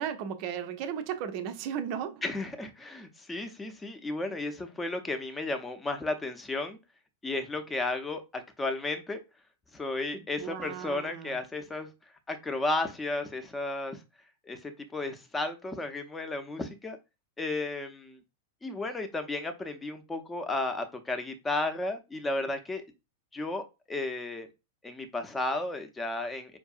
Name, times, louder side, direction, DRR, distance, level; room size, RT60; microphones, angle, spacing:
voice 1, 0.0-2.2 10.1-11.4, right 8 dB, 45° right, 0.5 m, -35 dB
voice 2, 2.2-6.8 7.2-9.2 9.7-11.9 12.3-14.0 14.4-17.0 17.4-18.2 18.6-22.8 23.3-24.5 24.8-26.6, left 2 dB, 15° left, 0.7 m, -33 dB
4.7 x 2.6 x 2.4 m
figure-of-eight pair, 95°, 0 cm